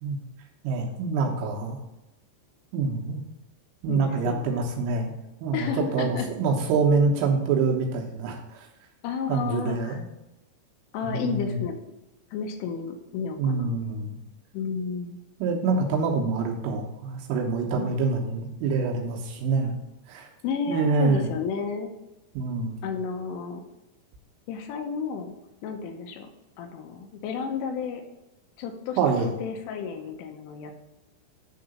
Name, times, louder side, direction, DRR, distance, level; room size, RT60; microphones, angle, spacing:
voice 1, 0.6-1.8 2.7-3.2 3.8-5.1 5.4-8.7 9.3-10.1 11.0-11.6 13.4-14.2 15.4-19.8 20.1-20.3 20.7-21.3 22.4-22.8 29.0-29.3, right 4 dB, 85° right, 0 dB, 3.6 m, -26 dB
voice 2, 3.9-4.6 5.5-6.3 9.0-10.0 10.9-11.8 12.3-13.8 14.5-15.2 17.8-17.9 20.4-21.9 22.8-23.7 24.5-25.3 25.6-26.3 26.6-28.0 28.6-29.0 29.4-30.8, left 6 dB, 85° left, 4 dB, 3.3 m, -32 dB
9.9 x 3.9 x 6.6 m, 0.97 s
omnidirectional pair, 5.8 m